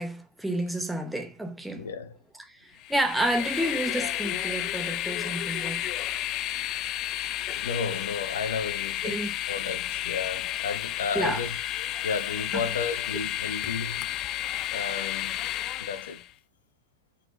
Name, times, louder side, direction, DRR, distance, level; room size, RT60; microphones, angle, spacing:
voice 1, 0.0-1.9 2.5-5.9 9.0-9.3 11.1-11.4, right 1 dB, 5° right, 0.9 m, -30 dB
voice 2, 1.8-2.2 7.5-9.2 9.5-11.5 12.0-14.1 14.7-15.4 15.8-16.2, left 5 dB, 65° left, 0.9 m, -33 dB
Train, 2.8-16.3, left 13 dB, 35° left, 0.5 m, -32 dB
9.0 x 4.2 x 2.9 m
figure-of-eight pair, 90°, 0 cm